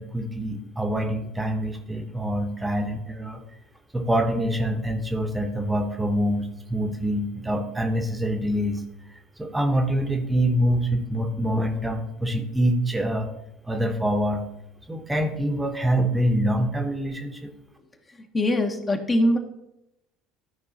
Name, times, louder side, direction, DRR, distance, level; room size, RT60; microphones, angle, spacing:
voice 1, 0.0-3.4 3.9-8.8 9.1-13.3 13.7-14.4 14.9-17.5, equal, 10° right, 4 dB, 1.0 m, -25 dB
voice 2, 18.3-19.4, left 1 dB, 25° left, 5 dB, 1.1 m, -22 dB
13.0 x 4.8 x 4.1 m, 0.87 s
figure-of-eight pair, 65°, 0 cm